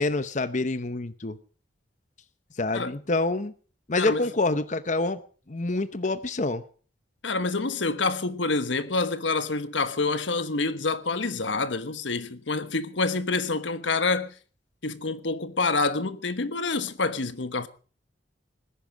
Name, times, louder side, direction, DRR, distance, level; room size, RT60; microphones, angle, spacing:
voice 1, 0.0-1.4 2.6-3.5 3.9-5.2 5.5-6.6, left 2 dB, 40° left, 0.8 m, -26 dB
voice 2, 4.0-4.3 7.2-14.3 14.8-17.7, left 3 dB, 80° left, 1.3 m, -27 dB
20.0 x 10.5 x 6.2 m
head